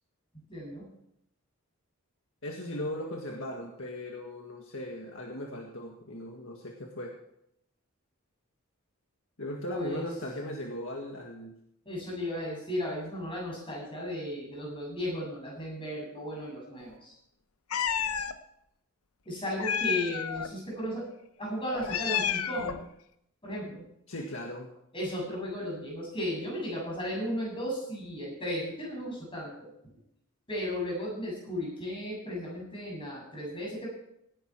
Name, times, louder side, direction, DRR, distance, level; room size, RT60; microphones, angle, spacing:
voice 1, 0.5-0.9 9.7-10.0 11.9-17.1 19.2-21.0 21.4-22.8 23.4-23.8 24.9-29.7 30.5-33.9, equal, 25° left, -3 dB, 7.5 m, -35 dB
voice 2, 2.4-7.1 9.4-11.6 24.1-24.7, left 1 dB, 60° left, 0 dB, 1.8 m, -38 dB
Meow, 17.7-18.3 19.6-20.5 21.7-22.9, left 8 dB, 80° left, 0.9 m, -30 dB
17.5 x 11.0 x 4.7 m, 0.77 s
head